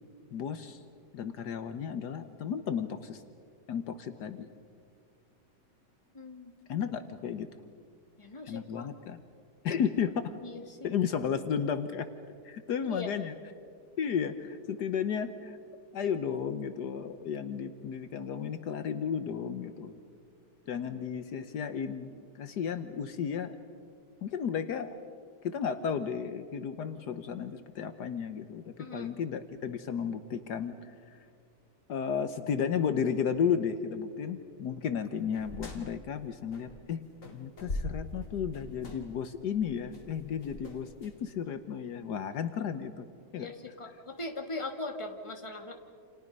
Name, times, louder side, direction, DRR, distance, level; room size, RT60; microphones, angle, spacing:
voice 1, 0.3-0.8 1.1-3.2 3.7-4.5 6.7-7.5 8.5-9.2 9.6-10.3 10.8-12.1 12.4-13.3 14.0-15.6 15.9-19.9 20.7-23.5 24.2-25.0 25.4-30.9 31.9-43.1 43.3-43.5, left 7 dB, 70° left, 10 dB, 1.5 m, -33 dB
voice 2, 6.1-6.5 8.2-8.9 10.4-10.9 12.8-13.1 28.8-29.1 43.4-45.7, left 2 dB, 15° left, 4 dB, 2.1 m, -40 dB
sound 1, 35.3-36.9 37.2-41.2, left 2 dB, 45° left, 3.0 m, -41 dB
29.5 x 28.5 x 5.4 m, 2.2 s
omnidirectional pair, 1.9 m